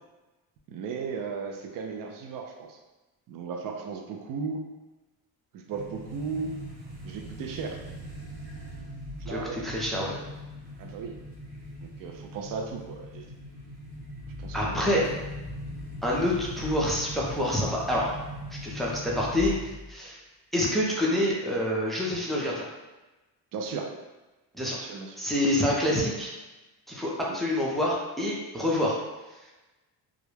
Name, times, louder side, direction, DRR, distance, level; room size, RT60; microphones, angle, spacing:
voice 1, 0.7-2.8 3.3-4.7 5.5-6.6 7.0-7.8 9.2-9.6 10.8-11.2 11.8-13.3 14.4-15.0 23.5-23.9 24.7-25.2 27.3-27.4, right 5 dB, 60° right, 2 dB, 0.5 m, -36 dB
sound 1, 5.7-19.9, left 1 dB, 75° right, 1.0 m, -40 dB
voice 2, 9.3-10.2 14.5-15.1 16.0-18.1 18.6-19.5 19.9-20.2 20.5-22.7 24.5-24.8 25.2-26.3 26.9-29.0, left 1 dB, ahead, -4 dB, 0.4 m, -27 dB
2.4 x 2.0 x 3.1 m, 1.1 s
cardioid pair, 115°, 39 cm